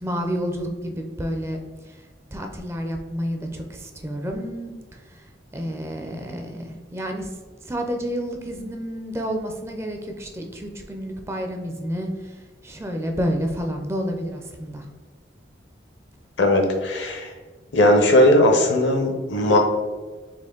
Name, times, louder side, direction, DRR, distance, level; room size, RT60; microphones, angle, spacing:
voice 1, 0.0-2.0 2.3-4.7 5.1-5.2 5.5-7.3 7.6-14.9, equal, 15° right, 3 dB, 0.4 m, -30 dB
voice 2, 16.4-17.3 17.7-19.6, left 1 dB, 70° left, 3 dB, 0.8 m, -18 dB
4.3 x 2.9 x 3.7 m, 1.4 s
head